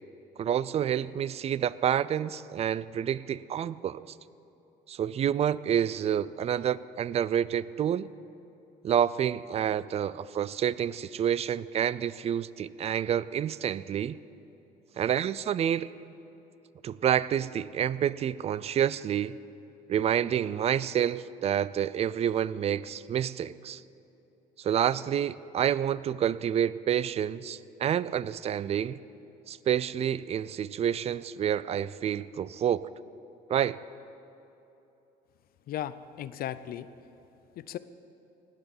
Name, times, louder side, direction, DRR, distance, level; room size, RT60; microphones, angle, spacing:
voice 1, 0.4-4.0 4.9-8.1 8.8-14.2 15.0-15.9 16.8-19.4 19.9-23.8 24.6-29.0 29.5-32.9 33.5-33.8, right 9 dB, 40° right, 18 dB, 0.4 m, -28 dB
voice 2, 35.7-36.9 37.6-37.8, left 11 dB, 60° left, 14 dB, 0.5 m, -36 dB
19.0 x 8.0 x 7.2 m, 3.0 s
cardioid pair, 110°, 17 cm